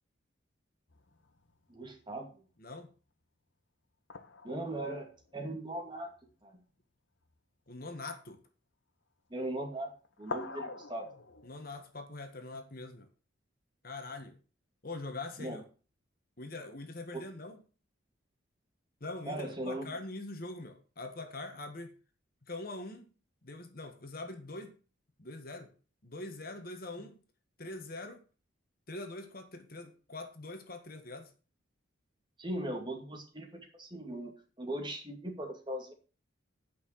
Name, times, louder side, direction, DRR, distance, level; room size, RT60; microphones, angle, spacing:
sound 1, 0.9-2.0 4.1-6.4 7.2-7.4 7.7-8.4 9.3-9.7 10.0-11.9, left 3 dB, 70° left, 1.3 m, -46 dB
voice 1, 1.7-2.3 4.4-6.1 6.4-6.5 9.3-11.1 15.4-15.6 19.3-19.8 32.4-34.3 34.6-35.9, right 1 dB, 25° right, 2 dB, 2.5 m, -39 dB
voice 2, 2.6-2.9 7.7-8.4 11.4-13.1 13.8-14.4 14.8-15.6 16.4-17.6 19.0-22.0 22.5-23.1 23.4-24.7 25.2-25.7 26.0-27.2 27.6-28.2 28.9-31.3, left 2 dB, 50° left, 6 dB, 1.6 m, -43 dB
9.6 x 5.9 x 7.5 m, 0.37 s
head